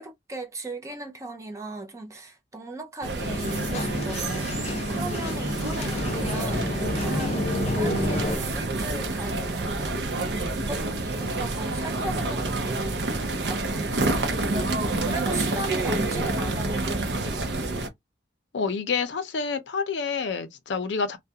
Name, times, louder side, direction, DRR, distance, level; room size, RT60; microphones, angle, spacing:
voice 1, 0.0-7.4 7.7-9.9 10.3-17.4, right 2 dB, 15° right, 0.4 m, -38 dB
sound 1, 3.0-17.9, right 2 dB, 75° right, 0.6 m, -28 dB
sound 2, 3.2-8.4, left 1 dB, 35° left, 0.5 m, -30 dB
voice 2, 18.5-21.2, left 5 dB, 85° left, 0.5 m, -28 dB
2.3 x 2.1 x 2.7 m
head